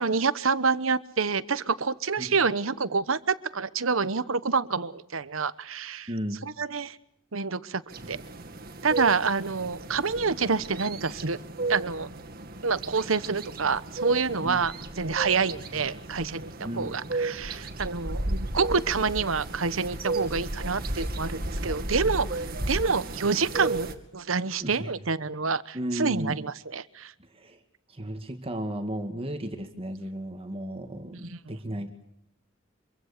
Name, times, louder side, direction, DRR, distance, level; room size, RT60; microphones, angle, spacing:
voice 1, 0.0-6.1 6.6-7.0 7.3-7.8 8.1-8.2 8.8-11.4 11.7-12.1 12.6-23.9 24.1-27.1 31.1-31.5, right 4 dB, 90° right, 16 dB, 1.2 m, -27 dB
voice 2, 6.1-6.5 14.4-14.6 16.6-17.0 24.6-24.9 25.7-26.4 27.3-27.6 27.9-31.9, equal, 30° right, 6 dB, 2.1 m, -34 dB
sound 1, 7.9-23.9, right 2 dB, 50° right, 2.4 m, -34 dB
25.5 x 24.0 x 6.8 m, 0.75 s
head